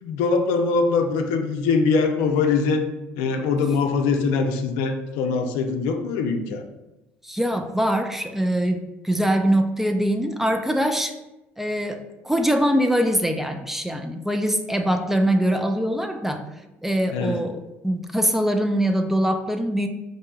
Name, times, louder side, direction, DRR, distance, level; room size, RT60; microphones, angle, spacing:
voice 1, 0.0-2.8 3.2-6.6 17.1-17.4, left 4 dB, 75° left, 5 dB, 0.5 m, -22 dB
voice 2, 7.2-11.1 11.6-16.4 16.8-19.9, equal, 5° right, 6 dB, 0.4 m, -23 dB
5.4 x 2.7 x 2.3 m, 0.98 s
hypercardioid pair, 75°, 6 cm